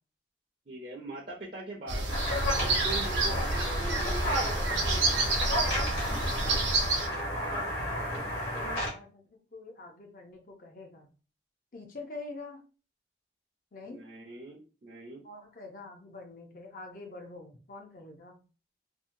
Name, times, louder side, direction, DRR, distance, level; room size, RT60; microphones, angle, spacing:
voice 1, 0.7-2.1 2.5-5.4 13.9-15.2, right 2 dB, 45° right, -3 dB, 0.5 m, -42 dB
sound 1, 1.9-7.1, right 2 dB, 90° right, 0.8 m, -29 dB
sound 2, 2.1-8.9, equal, 70° left, 1.3 m, -32 dB
voice 2, 7.5-11.1 11.7-12.6 13.7-14.0 15.2-18.4, left 3 dB, 50° left, 2 dB, 0.5 m, -46 dB
2.7 x 2.2 x 2.5 m, 0.35 s
head